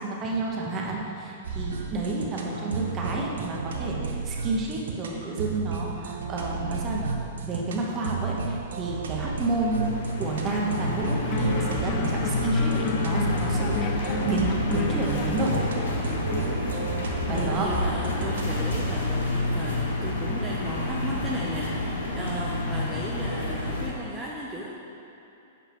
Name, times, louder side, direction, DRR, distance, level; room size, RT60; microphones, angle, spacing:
voice 1, 0.0-15.7 17.3-17.7, right 2 dB, 30° right, -2 dB, 1.3 m, -30 dB
sound 1, 1.4-19.0, right 5 dB, 75° right, 0.8 m, -33 dB
voice 2, 2.5-3.2 17.3-24.7, right 1 dB, 5° right, -6 dB, 0.9 m, -36 dB
sound 2, 9.1-23.9, left 2 dB, 80° left, 1.3 m, -29 dB
sound 3, 10.2-11.0 11.3-16.4, left 4 dB, 30° left, 0.6 m, -32 dB
7.3 x 5.3 x 4.7 m, 2.9 s
hypercardioid pair, 115°, 0 cm